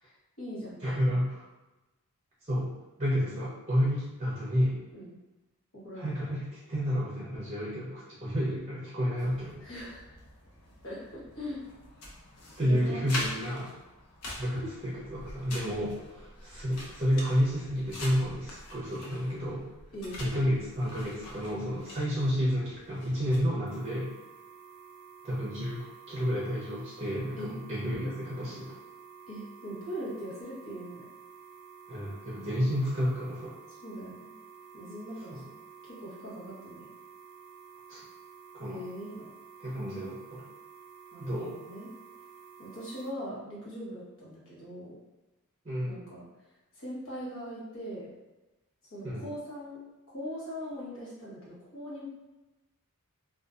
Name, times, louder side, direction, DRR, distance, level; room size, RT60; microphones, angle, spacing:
voice 1, 0.0-1.2 4.9-5.1 5.7-6.1 9.6-10.0 10.8-11.6 12.6-13.0 19.9-20.2 27.4-27.5 29.3-31.1 33.8-34.3 34.7-35.4 35.8-36.9 38.7-39.3 41.1-41.9 42.6-44.9 45.8-46.2 46.7-48.1 48.9-49.8 50.1-52.1, equal, 60° left, -8 dB, 1.1 m, -41 dB
voice 2, 0.8-1.5 2.4-2.7 3.0-4.8 6.0-9.6 12.6-13.7 14.4-19.6 20.2-24.1 25.2-28.7 31.9-33.6 35.3-35.4 37.9-38.0 38.5-38.8 39.6-40.4 41.2-41.6 45.6-46.0 49.0-49.2, equal, 30° right, -6 dB, 0.6 m, -30 dB
sound 1, 9.2-23.4, left 1 dB, 85° left, 0.6 m, -44 dB
sound 2, 23.7-43.1, right 6 dB, 85° right, 0.5 m, -51 dB
2.6 x 2.3 x 2.4 m, 1.0 s
head